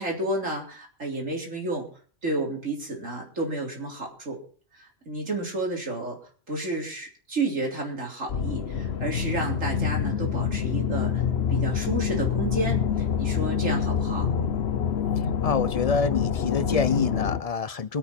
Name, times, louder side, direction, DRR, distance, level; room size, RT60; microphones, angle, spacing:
voice 1, 0.0-1.9 2.2-4.4 4.8-6.2 6.5-11.2 11.5-14.3, right 2 dB, 70° right, -1 dB, 4.0 m, -31 dB
sound 1, 8.3-17.4, left 7 dB, 55° left, 1.1 m, -26 dB
voice 2, 15.4-18.0, left 5 dB, 40° left, 14 dB, 0.6 m, -26 dB
23.0 x 8.5 x 4.3 m, 0.42 s
omnidirectional pair, 1.4 m